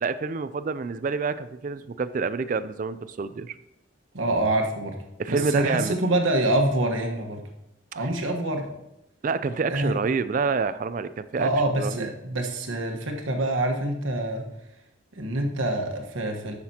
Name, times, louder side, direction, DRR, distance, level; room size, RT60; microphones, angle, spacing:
voice 1, 0.0-3.6 5.2-6.0 7.9-8.1 9.2-11.5 11.8-12.1, right 4 dB, 40° right, 14 dB, 0.3 m, -27 dB
voice 2, 4.1-5.0 5.3-7.4 7.9-8.8 9.7-9.9 11.4-14.4 15.2-16.5, right 1 dB, 80° right, 3 dB, 1.3 m, -26 dB
13.5 x 6.0 x 2.9 m, 0.87 s
head